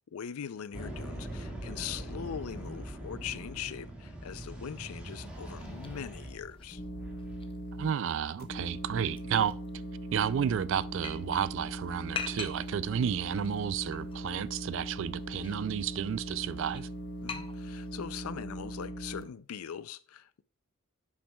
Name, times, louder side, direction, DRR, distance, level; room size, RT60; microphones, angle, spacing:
voice 1, 0.1-6.8 17.2-20.4, left 8 dB, 80° left, 0.4 m, -41 dB
sound 1, 0.7-7.5, right 1 dB, 5° right, 1.8 m, -42 dB
sound 2, 5.1-18.1, left 6 dB, 25° left, 0.5 m, -47 dB
sound 3, 6.7-7.9 8.4-19.2, right 1 dB, 45° left, 1.0 m, -40 dB
voice 2, 7.8-9.6 10.1-16.9, right 8 dB, 55° right, 0.3 m, -31 dB
9.5 x 7.4 x 2.3 m
head